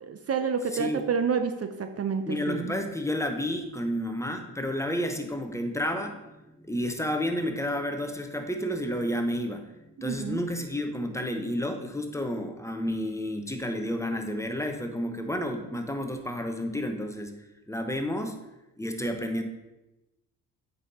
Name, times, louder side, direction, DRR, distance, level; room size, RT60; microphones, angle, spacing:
voice 1, 0.0-2.7 10.0-10.4, right 6 dB, 40° right, 8 dB, 0.6 m, -29 dB
voice 2, 0.7-1.0 2.3-18.4 18.8-19.4, equal, 10° left, 5 dB, 0.9 m, -31 dB
8.1 x 5.6 x 4.2 m, 0.98 s
cardioid pair, 90°, 36 cm